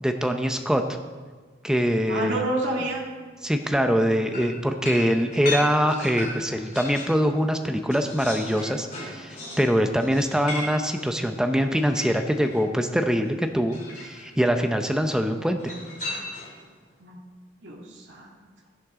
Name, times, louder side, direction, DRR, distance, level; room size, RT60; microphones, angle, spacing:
voice 1, 0.0-0.8 1.6-2.4 3.4-15.7, equal, 5° right, 6 dB, 0.6 m, -23 dB
voice 2, 2.1-3.0 17.0-17.2 17.6-18.7, right 1 dB, 70° right, -3 dB, 2.3 m, -30 dB
sound 1, 4.3-7.2 7.6-12.6 13.7-14.3 15.6-16.7, left 2 dB, 40° left, 2.8 m, -36 dB
13.5 x 11.0 x 3.7 m, 1.4 s
head